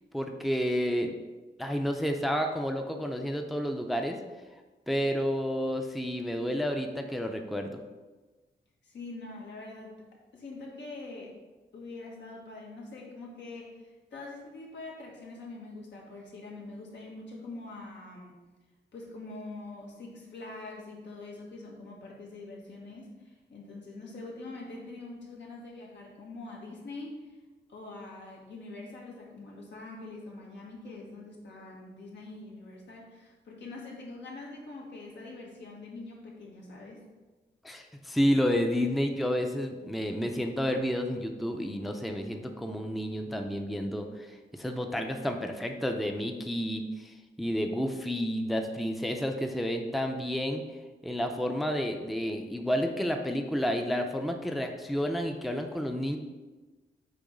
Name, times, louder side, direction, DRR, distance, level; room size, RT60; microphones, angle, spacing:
voice 1, 0.1-1.1 1.6-4.2 4.9-7.7 37.6-50.6 51.0-56.2, equal, ahead, 4 dB, 0.5 m, -30 dB
voice 2, 8.8-10.0 10.3-11.3 11.7-18.3 18.9-27.4 27.7-37.0, left 2 dB, 90° left, -2 dB, 1.7 m, -44 dB
8.4 x 3.1 x 5.2 m, 1.2 s
wide cardioid pair, 145°, 18 cm